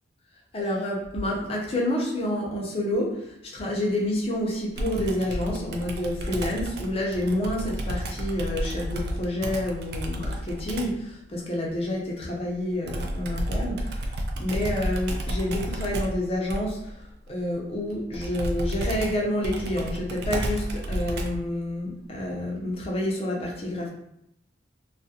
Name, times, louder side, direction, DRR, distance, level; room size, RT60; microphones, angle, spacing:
voice 1, 0.5-14.1 14.4-23.9, left 1 dB, 30° left, -2 dB, 0.5 m, -29 dB
Computer keyboard, 4.8-11.0 12.9-21.5, equal, 55° right, 0.3 m, -31 dB
2.3 x 2.0 x 2.7 m, 0.78 s
head